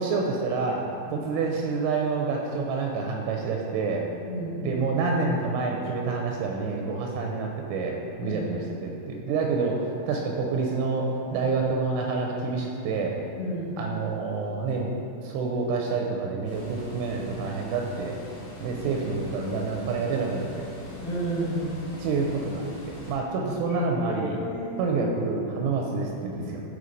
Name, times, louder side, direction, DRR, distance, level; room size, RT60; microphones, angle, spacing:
voice 1, 0.0-0.9 1.1-4.1 4.6-13.2 13.8-14.9 15.2-18.1 18.6-20.7 22.0-22.7 23.1-24.4 24.8-26.6, right 4 dB, 85° right, 0 dB, 2.9 m, -28 dB
voice 2, 4.3-4.6 8.2-8.4 13.4-13.7 21.0-21.7 23.7-23.8 24.1-24.7, right 1 dB, 80° left, -8 dB, 2.0 m, -31 dB
sound 1, 16.4-23.1, left 2 dB, 65° left, 2.9 m, -41 dB
7.8 x 3.2 x 3.8 m, 2.7 s
omnidirectional pair, 5.4 m